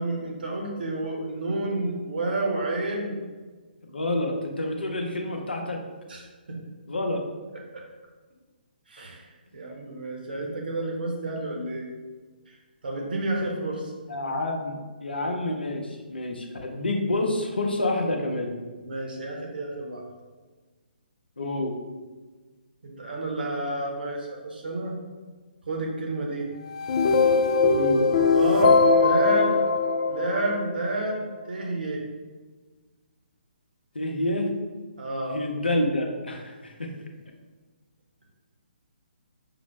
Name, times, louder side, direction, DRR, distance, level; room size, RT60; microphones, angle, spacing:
voice 1, 0.0-3.2 6.1-6.3 7.7-7.8 8.9-9.2 9.5-11.9 12.8-13.9 18.8-20.0 22.8-24.9 25.7-26.5 28.3-29.6 30.1-32.0 35.0-35.4, right 2 dB, 65° right, 0 dB, 1.0 m, -30 dB
voice 2, 3.9-5.8 6.9-7.2 10.3-10.4 14.1-18.5 21.4-21.7 27.7-28.0 33.9-34.5 35.3-36.9, left 1 dB, 75° left, 3 dB, 0.7 m, -28 dB
sound 1, 26.7-30.9, left 4 dB, 40° left, 0.3 m, -21 dB
5.9 x 2.0 x 3.1 m, 1.3 s
figure-of-eight pair, 135°, 5 cm